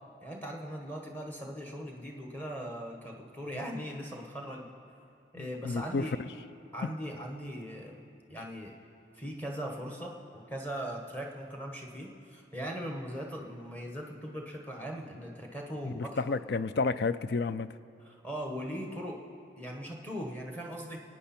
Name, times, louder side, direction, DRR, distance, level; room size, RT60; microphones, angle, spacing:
voice 1, 0.2-4.7 5.3-6.2 6.7-8.0 8.3-8.8 9.1-16.3 18.0-19.2 19.6-21.0, equal, 10° left, 1 dB, 1.4 m, -39 dB
voice 2, 5.4-6.0 15.8-17.7, left 4 dB, 60° left, 14 dB, 0.4 m, -31 dB
27.0 x 9.5 x 4.4 m, 2.5 s
head